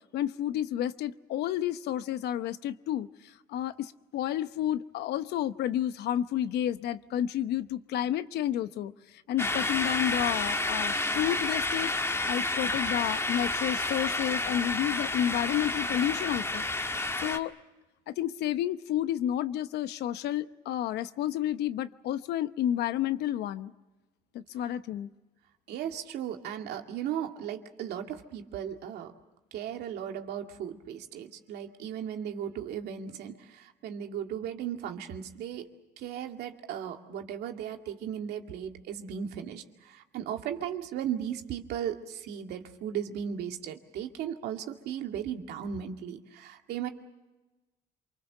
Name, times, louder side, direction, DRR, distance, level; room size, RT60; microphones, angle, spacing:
voice 1, 0.1-8.9 9.3-16.6 17.2-17.5 18.1-23.7 24.3-25.1, left 11 dB, 75° left, 13 dB, 0.9 m, -31 dB
sound 1, 9.4-17.4, left 2 dB, 15° left, 1.6 m, -30 dB
voice 2, 25.7-29.1 29.5-35.7 36.0-46.9, right 9 dB, 75° right, 4 dB, 2.2 m, -36 dB
27.5 x 24.5 x 6.7 m, 1.1 s
cardioid pair, 110°, 17 cm